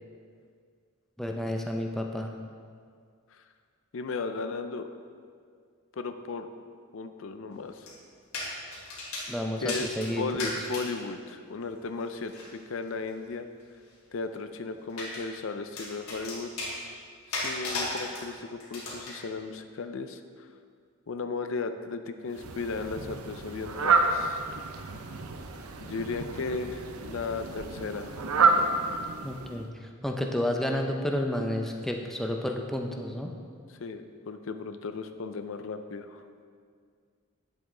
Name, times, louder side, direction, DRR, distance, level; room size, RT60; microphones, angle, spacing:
voice 1, 1.2-2.3 9.3-10.5 29.2-33.3, left 1 dB, ahead, 2 dB, 0.5 m, -31 dB
voice 2, 3.9-4.9 5.9-6.5 6.9-7.9 9.6-13.5 14.1-16.5 17.3-20.5 21.1-24.4 25.8-28.1 33.8-36.2, left 4 dB, 65° left, 8 dB, 0.5 m, -35 dB
sound 1, 7.9-8.0 8.3-9.3 9.7-10.9 12.3-12.5 14.9-15.2 15.8-16.7 17.3-18.2 18.6-19.2, left 2 dB, 85° left, 2.4 m, -35 dB
Fowl, 22.3-29.7, right 4 dB, 85° right, 0.7 m, -29 dB
9.4 x 7.8 x 3.8 m, 2.1 s
head